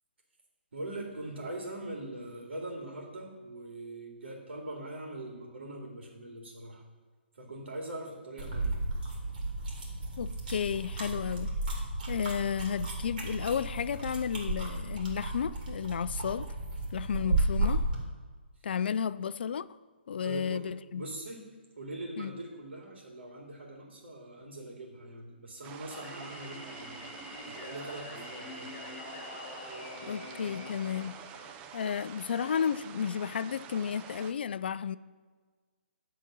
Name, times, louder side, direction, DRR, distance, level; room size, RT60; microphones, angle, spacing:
voice 1, 0.7-6.8 7.3-8.8 20.2-20.7 20.9-21.5 21.8-27.0 27.4-28.7, right 1 dB, 80° right, 2.3 m, -42 dB
sound 1, 8.4-18.0, right 2 dB, 50° right, 2.7 m, -33 dB
voice 2, 10.2-11.5 12.1-16.5 16.9-17.8 18.6-19.7 20.1-21.0 22.2-22.3 30.0-31.2 31.7-35.0, left 7 dB, 60° left, 0.4 m, -32 dB
sound 2, 25.6-34.3, right 8 dB, 20° right, 0.4 m, -48 dB
Singing, 25.9-31.9, left 2 dB, 30° left, 2.2 m, -45 dB
11.0 x 4.0 x 7.5 m
hypercardioid pair, 150°, 6 cm